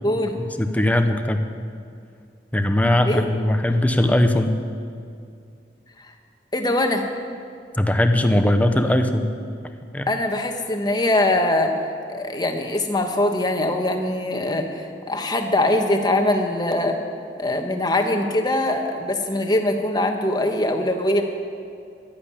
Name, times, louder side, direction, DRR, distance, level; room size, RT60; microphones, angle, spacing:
voice 1, 0.0-0.4 3.1-3.2 6.5-7.0 10.1-11.8 12.1-17.0 17.4-21.2, left 1 dB, 25° left, 4 dB, 1.3 m, -22 dB
voice 2, 0.6-1.5 2.5-4.5 7.8-9.3 9.9-10.1, left 1 dB, 10° left, 6 dB, 0.8 m, -19 dB
12.0 x 11.0 x 8.6 m, 2.3 s
head